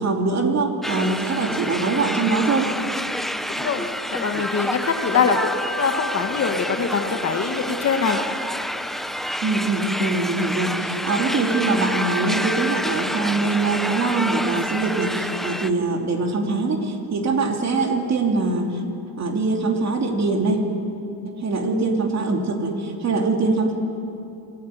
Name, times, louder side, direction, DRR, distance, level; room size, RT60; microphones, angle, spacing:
voice 1, 0.0-2.7 9.4-18.8 19.2-20.6 21.2-23.7, right 3 dB, 35° right, 2 dB, 3.1 m, -23 dB
sound 1, 0.8-15.7, equal, ahead, 0.5 m, -28 dB
voice 2, 3.5-8.2, left 5 dB, 35° left, 5 dB, 1.4 m, -23 dB
26.0 x 15.0 x 9.3 m, 2.7 s
cardioid pair, 140°, 46 cm